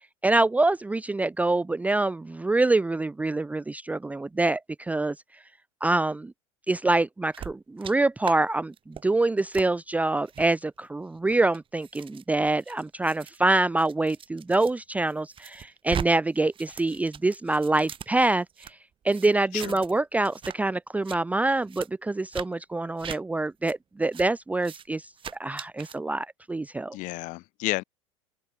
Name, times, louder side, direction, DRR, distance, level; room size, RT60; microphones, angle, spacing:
voice 1, 0.2-5.1 5.8-6.3 6.7-18.7 19.0-25.1 25.4-27.0, right 2 dB, 10° right, 0.7 m, -25 dB
sound 1, 7.3-7.9 8.2-8.4 8.7-9.0 9.5-9.7 10.3-10.5 11.1-14.7 15.1-16.1 16.3-18.7 19.1-20.0 20.2-20.6 20.9-21.2 21.7-21.9 22.3-22.5 23.0-23.2 23.7-23.8 24.1-24.3 24.6-24.8 25.2-26.0, right 8 dB, 35° right, 5.6 m, -39 dB
voice 2, 19.5-19.8 26.9-27.8, left 22 dB, 55° left, 5.4 m, -31 dB
open air
hypercardioid pair, 80°, 16 cm